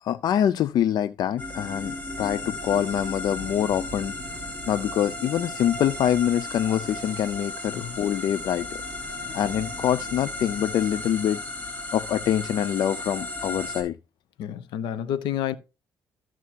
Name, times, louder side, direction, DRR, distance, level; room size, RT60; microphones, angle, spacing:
voice 1, 0.0-4.1 4.7-11.4 11.9-14.0, left 10 dB, 60° left, 0.4 m, -25 dB
sound 1, 1.4-13.8, left 2 dB, 20° left, 3.5 m, -35 dB
voice 2, 14.4-15.5, left 10 dB, 80° left, 0.8 m, -29 dB
14.0 x 6.1 x 2.9 m
supercardioid pair, 80°, 8 cm